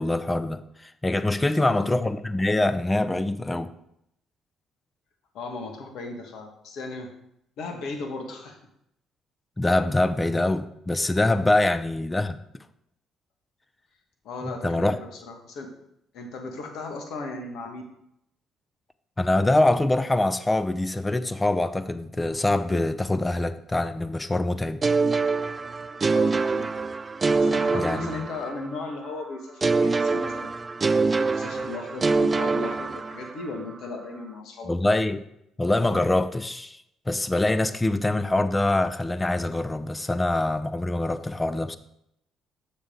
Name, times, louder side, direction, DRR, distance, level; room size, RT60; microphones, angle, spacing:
voice 1, 0.0-3.7 9.6-12.4 14.4-15.0 19.2-24.8 27.7-28.3 34.7-35.2 35.6-36.8 37.1-41.8, left 2 dB, 20° left, 12 dB, 0.6 m, -24 dB
voice 2, 1.4-1.9 5.3-7.1 7.6-8.6 14.2-14.9 15.2-15.7 16.1-17.8 26.1-26.7 27.4-30.5 31.0-34.7, left 3 dB, 70° left, 4 dB, 1.5 m, -36 dB
sound 1, 24.8-28.8 29.6-33.5, right 4 dB, 35° right, 0.3 m, -24 dB
6.8 x 6.6 x 3.8 m, 0.77 s
hypercardioid pair, 60°, 0 cm